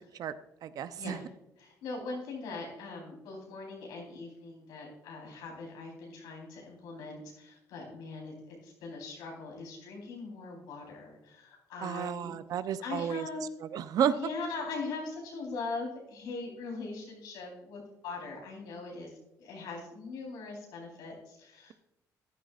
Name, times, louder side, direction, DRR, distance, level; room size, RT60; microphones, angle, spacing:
voice 1, 0.6-1.2 11.8-13.3 13.7-14.1, right 9 dB, 65° right, 13 dB, 0.6 m, -31 dB
voice 2, 1.6-12.4 12.8-13.4 14.1-19.1 19.4-21.7, left 3 dB, 90° left, -1 dB, 3.9 m, -41 dB
14.0 x 11.0 x 2.4 m, 0.86 s
cardioid pair, 95°, 7 cm